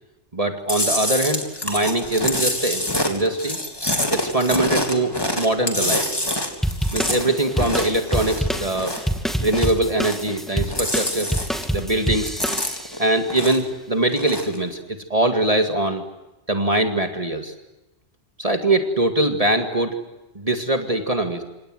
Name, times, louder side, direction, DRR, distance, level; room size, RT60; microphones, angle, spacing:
voice 1, 0.3-3.6 4.1-6.1 6.9-8.9 9.4-11.3 11.7-12.4 13.0-16.0 16.5-17.5 18.4-20.0 20.3-21.4, right 1 dB, 30° right, 6 dB, 2.2 m, -22 dB
Chewing mastication, 0.7-9.1 9.4-10.4 10.6-11.8 12.1-13.7 14.1-14.6, left 1 dB, 20° left, 3.7 m, -26 dB
sound 1, 6.6-13.1, equal, ahead, 2.4 m, -27 dB
28.0 x 27.0 x 7.8 m, 1.0 s
omnidirectional pair, 1.2 m